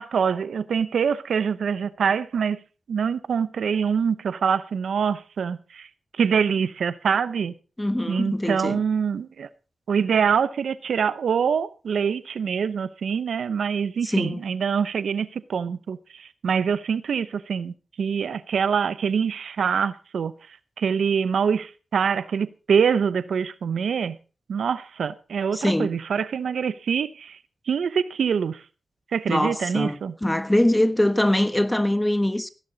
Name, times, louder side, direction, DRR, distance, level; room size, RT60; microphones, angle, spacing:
voice 1, 0.0-2.6 2.9-5.9 6.2-7.5 8.1-9.5 9.9-20.3 20.8-24.2 24.5-27.4 27.7-28.6 29.1-30.1, right 6 dB, 85° right, 0.7 m, -25 dB
voice 2, 7.8-8.8 14.0-14.4 25.5-25.9 29.3-32.5, left 1 dB, 15° left, 1.3 m, -23 dB
15.5 x 11.0 x 3.9 m
cardioid pair, 55°, 0 cm